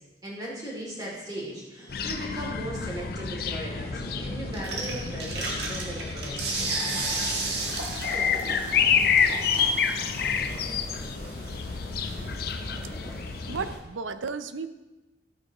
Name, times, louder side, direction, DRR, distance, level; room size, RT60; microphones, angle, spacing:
voice 1, 0.2-6.7, right 1 dB, 20° right, -4 dB, 2.6 m, -38 dB
Growling, 0.9-2.6 3.0-6.0 6.4-13.2 13.5-13.6, equal, 20° left, 3.0 m, -47 dB
sound 1, 1.9-13.8, left 6 dB, 50° left, 0.6 m, -29 dB
sound 2, 4.5-13.8, right 2 dB, 60° right, 1.7 m, -35 dB
voice 2, 13.0-14.7, right 5 dB, 85° right, 11 dB, 0.6 m, -35 dB
12.5 x 8.8 x 3.0 m, 1.1 s
head